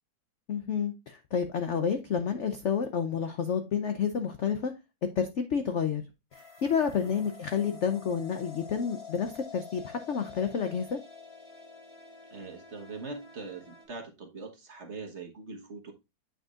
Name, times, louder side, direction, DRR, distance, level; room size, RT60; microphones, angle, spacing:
voice 1, 0.5-4.7 5.2-6.0 6.4-11.0, left 7 dB, 70° left, 0.6 m, -30 dB
sound 1, 6.3-13.9, left 6 dB, 45° left, 2.8 m, -48 dB
voice 2, 12.3-15.9, right 3 dB, 40° right, 1.3 m, -42 dB
8.8 x 5.3 x 2.4 m
omnidirectional pair, 2.1 m